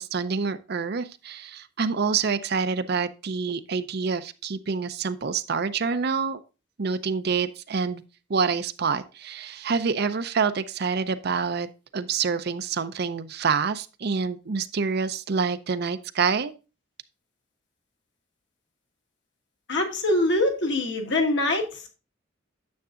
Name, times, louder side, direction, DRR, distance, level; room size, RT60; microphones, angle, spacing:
voice 1, 0.0-6.4 6.8-8.0 8.3-16.5, right 5 dB, 55° right, 12 dB, 0.5 m, -27 dB
voice 2, 19.7-21.9, left 2 dB, 60° left, 2 dB, 1.6 m, -24 dB
9.5 x 7.2 x 2.5 m, 0.31 s
head